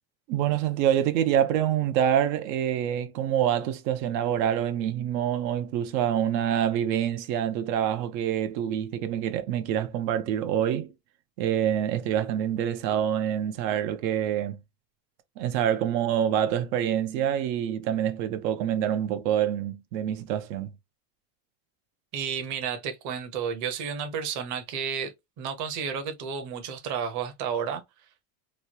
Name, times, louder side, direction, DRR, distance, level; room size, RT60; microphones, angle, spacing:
voice 1, 0.3-10.9 11.4-14.6 15.4-20.7, right 10 dB, 85° right, 0.7 m, -26 dB
voice 2, 22.1-27.8, right 7 dB, 40° right, 0.7 m, -32 dB
3.1 x 2.2 x 2.7 m
cardioid pair, 155°, 49 cm